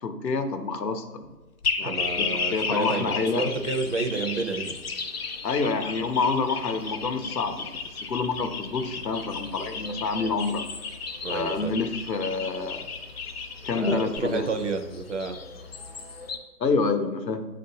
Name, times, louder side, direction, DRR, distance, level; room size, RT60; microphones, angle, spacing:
voice 1, 0.0-1.2 1.8-3.4 5.4-7.7 8.0-10.6 11.3-12.9 13.7-14.5 16.6-17.4, left 4 dB, 90° left, 6 dB, 0.8 m, -27 dB
sound 1, 1.6-14.2, left 5 dB, 65° left, 0.9 m, -33 dB
voice 2, 1.8-4.7 11.2-11.7 13.7-15.4, right 3 dB, 50° right, 6 dB, 0.5 m, -30 dB
sound 2, 2.0-16.4, left 4 dB, 40° left, 0.5 m, -43 dB
7.6 x 2.6 x 2.7 m, 1.1 s
figure-of-eight pair, 135°, 48 cm